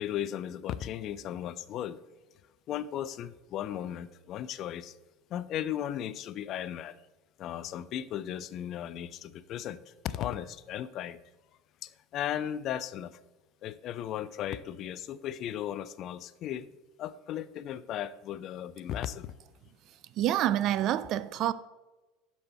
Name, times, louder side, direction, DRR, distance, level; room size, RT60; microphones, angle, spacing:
voice 1, 0.0-2.0 2.7-5.0 5.3-7.0 7.4-11.2 11.8-13.2 13.6-16.7 17.0-19.3, left 11 dB, 45° left, 16 dB, 0.4 m, -36 dB
voice 2, 20.2-21.5, right 12 dB, 50° right, 17 dB, 0.4 m, -27 dB
12.0 x 4.2 x 4.4 m, 1.1 s
hypercardioid pair, 75°, 0 cm